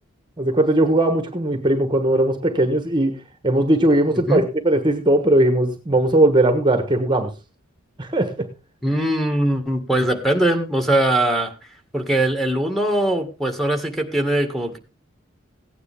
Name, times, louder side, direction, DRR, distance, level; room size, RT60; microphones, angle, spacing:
voice 1, 0.4-3.2 3.4-7.3 8.0-8.5, right 1 dB, 25° right, 7 dB, 1.3 m, -19 dB
voice 2, 8.8-11.5 11.9-14.8, right 1 dB, ahead, 5 dB, 1.8 m, -21 dB
16.0 x 9.6 x 3.5 m, 0.29 s
head